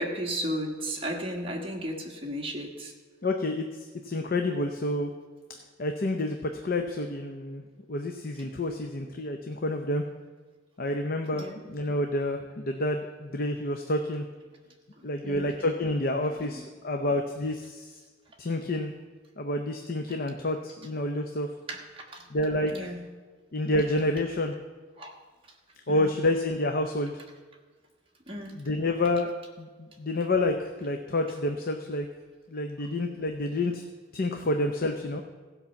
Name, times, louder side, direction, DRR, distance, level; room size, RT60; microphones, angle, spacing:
voice 1, 0.0-2.9 11.3-11.6 15.0-15.5 16.2-16.5 21.7-22.3 22.7-23.0 25.0-25.1 25.9-26.1 28.3-28.6, equal, 30° right, 0 dB, 1.5 m, -35 dB
voice 2, 3.2-5.1 5.8-7.6 7.9-10.0 10.8-14.2 15.0-18.0 18.4-18.9 19.4-21.5 22.3-22.9 23.5-24.5 25.9-27.2 28.6-29.3 29.6-32.1 32.5-33.8 34.1-35.2, left 1 dB, 50° left, 5 dB, 0.7 m, -29 dB
15.5 x 5.5 x 7.0 m, 1.4 s
head